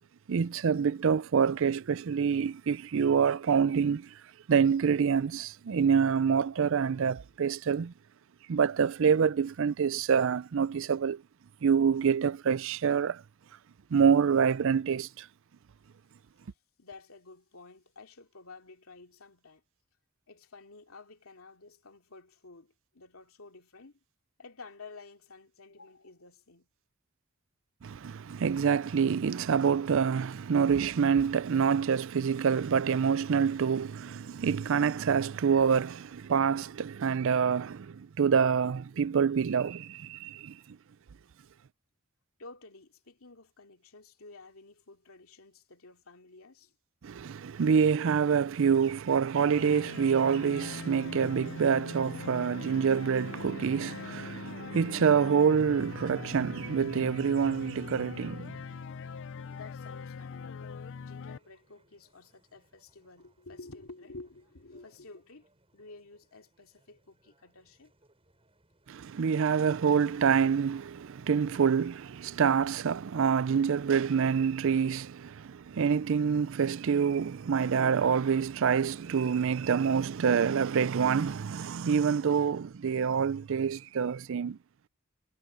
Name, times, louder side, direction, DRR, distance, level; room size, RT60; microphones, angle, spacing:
voice 1, 0.3-4.1 4.5-7.9 8.5-11.2 11.6-13.2 13.9-15.3 27.8-40.8 47.0-58.5 68.9-84.6, right 6 dB, 65° right, 0.4 m, -26 dB
voice 2, 16.8-19.6 20.3-24.0 24.4-26.7 42.4-46.7 59.5-60.7 61.0-67.9, left 3 dB, 75° left, 2.7 m, -51 dB
sound 1, 49.5-61.4, left 5 dB, 60° left, 0.4 m, -42 dB
sound 2, 54.7-72.2, right 2 dB, 25° right, 6.6 m, -69 dB
head